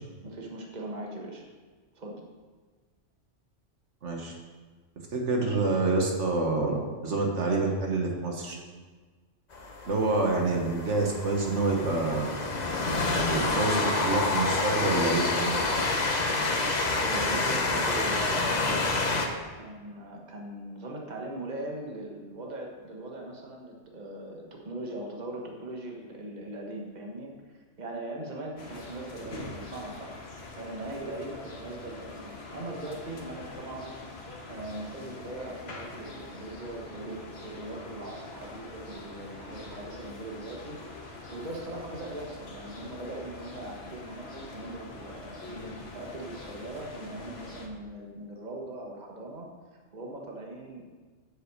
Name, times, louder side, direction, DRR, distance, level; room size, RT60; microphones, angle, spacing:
voice 1, 0.2-1.4 1.9-2.2 17.0-30.1 30.5-34.0 34.5-40.8 41.0-51.0, right 1 dB, 40° right, 0 dB, 1.4 m, -40 dB
voice 2, 4.0-4.3 5.1-8.5 9.8-12.3 13.1-15.6, right 3 dB, 75° right, 0 dB, 1.6 m, -27 dB
Train, 9.5-19.3, left 3 dB, 40° left, 1.0 m, -28 dB
sound 1, 28.6-47.7, left 2 dB, 60° left, 1.5 m, -44 dB
7.9 x 6.6 x 6.4 m, 1.4 s
omnidirectional pair, 1.2 m